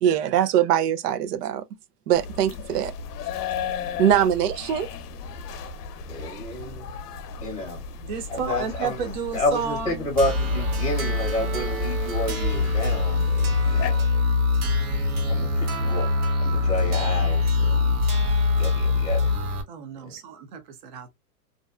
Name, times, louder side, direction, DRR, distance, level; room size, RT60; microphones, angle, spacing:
voice 1, 0.0-1.6 2.1-2.9 4.0-4.9, right 10 dB, 85° right, 0.6 m, -22 dB
sound 1, 2.1-13.9, left 4 dB, 85° left, 0.6 m, -35 dB
voice 2, 6.1-6.9 7.4-7.8 8.3-9.0 9.3-14.1 15.3-16.1 16.4-18.0 18.6-19.3 20.0-20.1, left 2 dB, 10° left, 0.6 m, -30 dB
voice 3, 8.0-10.1 19.7-21.1, right 6 dB, 35° right, 0.4 m, -32 dB
sound 2, 10.2-19.6, left 3 dB, 70° right, 1.0 m, -23 dB
2.5 x 2.2 x 2.3 m
supercardioid pair, 155°, 46 cm